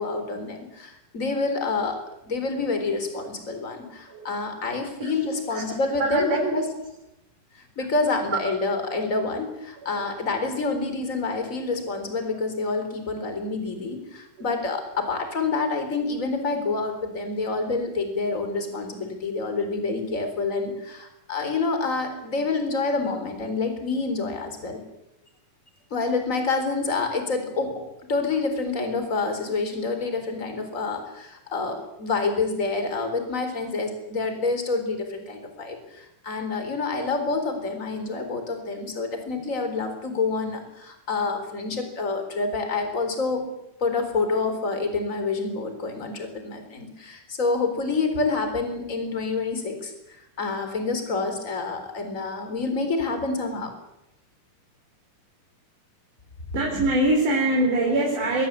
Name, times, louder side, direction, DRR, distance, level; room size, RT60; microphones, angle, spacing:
voice 1, 0.0-2.0 2.2-6.6 7.5-24.8 25.9-27.8 28.1-43.4 43.8-53.7, left 3 dB, 25° left, 7 dB, 4.2 m, -27 dB
voice 2, 6.0-6.6 9.8-10.1 13.1-13.3 14.4-14.7 56.5-58.5, right 1 dB, 90° right, -1 dB, 5.6 m, -24 dB
25.0 x 18.5 x 8.5 m, 0.88 s
omnidirectional pair, 3.5 m